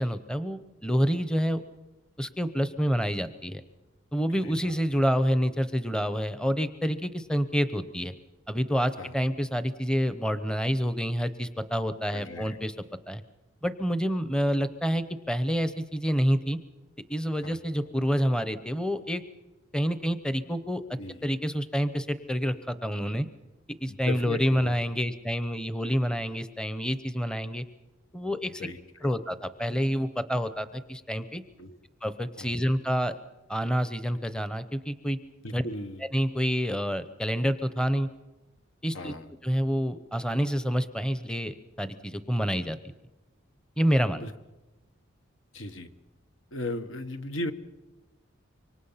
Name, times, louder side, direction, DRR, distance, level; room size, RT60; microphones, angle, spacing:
voice 1, 0.0-1.6 2.2-3.6 4.1-8.1 8.5-12.7 13.1-13.2 13.6-16.6 17.1-19.2 19.7-20.8 21.2-23.3 23.8-27.6 28.1-28.6 29.0-31.4 32.0-33.1 33.5-35.2 35.5-35.6 36.1-38.1 38.8-39.1 39.4-42.8 43.8-44.3, equal, 5° left, 11 dB, 0.8 m, -28 dB
voice 2, 4.4-4.8 9.0-9.2 12.1-12.6 17.4-17.6 21.0-21.2 23.9-24.8 28.6-28.8 31.6-31.8 32.4-32.5 35.4-36.0 38.9-39.3 44.2-44.3 45.5-45.9 46.5-47.5, left 2 dB, 75° left, 8 dB, 1.5 m, -36 dB
26.0 x 24.0 x 5.7 m, 1.1 s
head